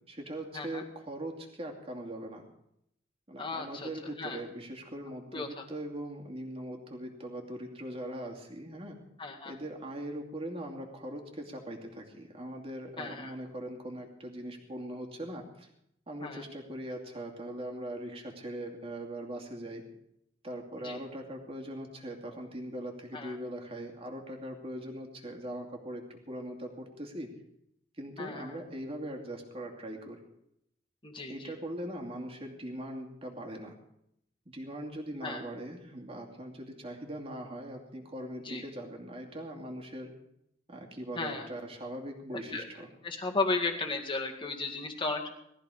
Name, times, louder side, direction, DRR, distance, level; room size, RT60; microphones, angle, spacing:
voice 1, 0.1-2.4 3.3-9.0 9.4-15.7 16.1-19.8 20.4-27.3 28.0-30.2 31.1-33.8 34.5-40.1 40.7-42.9, right 1 dB, 30° right, 2 dB, 2.6 m, -41 dB
voice 2, 3.4-3.9 4.2-4.4 5.3-5.6 9.2-9.5 13.0-13.3 16.2-16.4 20.8-21.0 23.1-23.4 28.2-28.6 31.0-31.5 35.2-35.4 38.4-38.6 41.2-41.5 42.3-42.6 43.0-45.3, left 3 dB, 30° left, 2 dB, 2.0 m, -35 dB
19.5 x 14.0 x 5.0 m, 0.79 s
head